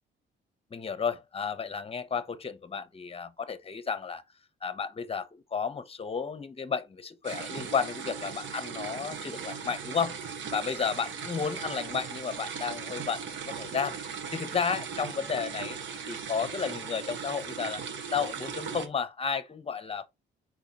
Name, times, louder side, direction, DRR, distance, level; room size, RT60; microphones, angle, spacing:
voice 1, 0.7-4.2 4.6-10.2 10.5-14.0 14.3-15.8 16.1-20.1, left 6 dB, 30° left, 1.0 m, -32 dB
sound 1, 7.2-18.9, right 6 dB, 70° right, 1.5 m, -38 dB
4.7 x 4.4 x 5.4 m
cardioid pair, 90°, 20 cm